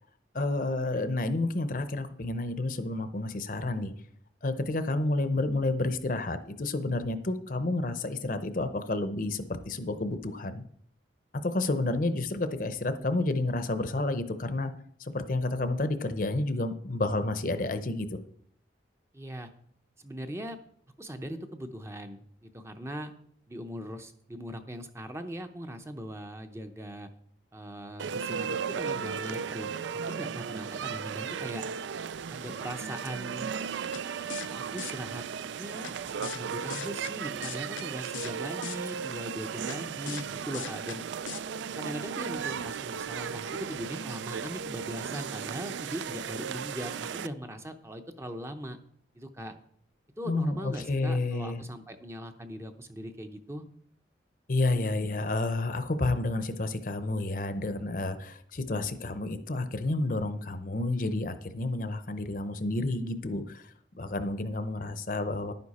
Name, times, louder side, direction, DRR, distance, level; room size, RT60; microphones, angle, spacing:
voice 1, 0.3-3.9 4.4-10.6 11.4-14.7 15.0-18.2 50.3-51.6 54.5-65.5, left 2 dB, 45° left, 10 dB, 0.7 m, -30 dB
voice 2, 19.1-19.5 20.0-20.6 21.0-23.1 23.5-27.1 27.5-31.6 32.3-33.5 34.5-35.2 35.6-35.9 36.2-41.0 41.7-48.8 49.1-49.5 50.2-53.6, equal, 15° right, 7 dB, 0.7 m, -40 dB
sound 1, 28.0-47.3, right 7 dB, 75° right, 0.4 m, -36 dB
sound 2, 33.9-34.0 34.3-34.5 34.8-34.9 35.8-35.9 36.2-36.4 36.7-37.1 37.4-37.8 38.1-38.3 38.6-38.8 39.7-39.8 40.1-40.2 40.5-41.0 41.3-41.4, left 9 dB, 85° left, 0.6 m, -39 dB
11.0 x 9.7 x 4.2 m, 0.63 s
head